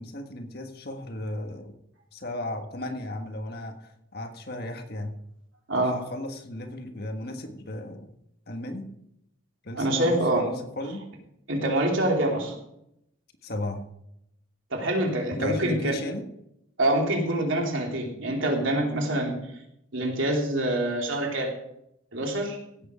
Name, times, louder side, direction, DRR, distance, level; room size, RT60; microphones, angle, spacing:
voice 1, 0.0-1.7 2.1-5.1 5.7-8.1 8.5-8.9 9.6-11.0 13.4-13.8 15.4-16.3, left 1 dB, 50° left, 5 dB, 1.6 m, -35 dB
voice 2, 9.7-10.5 11.5-12.5 14.7-15.9 16.8-19.3 19.9-21.5 22.1-22.6, right 1 dB, 70° right, 0 dB, 3.1 m, -25 dB
16.5 x 8.2 x 5.0 m, 0.79 s
head